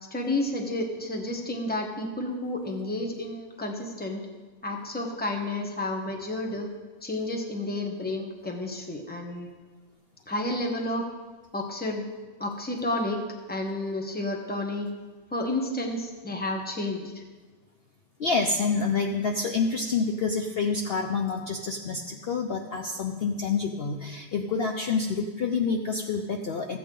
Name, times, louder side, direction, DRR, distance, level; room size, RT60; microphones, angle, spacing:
voice 1, 0.1-4.2 4.6-6.7 7.0-9.5 10.3-11.1 11.5-12.0 12.4-13.2 13.5-14.9 15.3-17.2, left 1 dB, 10° left, 2 dB, 0.9 m, -31 dB
voice 2, 18.2-26.8, left 4 dB, 55° left, 3 dB, 0.8 m, -28 dB
14.0 x 8.2 x 3.8 m, 1.3 s
omnidirectional pair, 1.4 m